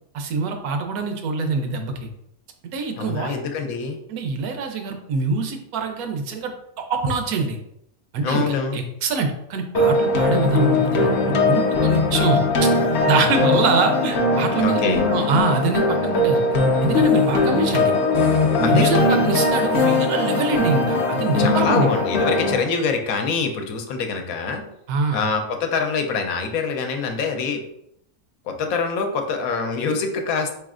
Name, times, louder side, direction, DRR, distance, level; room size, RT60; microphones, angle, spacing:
voice 1, 0.1-2.1 2.7-3.4 4.1-6.5 6.9-7.6 8.1-12.7 13.1-16.4 16.8-17.9 18.6-21.9 24.9-25.2, right 4 dB, 80° right, 5 dB, 1.1 m, -24 dB
voice 2, 3.0-4.0 8.2-8.8 14.6-15.0 18.6-19.2 21.4-24.6 25.1-27.6 28.5-30.5, left 4 dB, 80° left, 5 dB, 1.0 m, -25 dB
sound 1, 9.7-22.5, left 3 dB, 60° left, 0.7 m, -20 dB
4.1 x 3.1 x 2.4 m, 0.77 s
omnidirectional pair, 1.5 m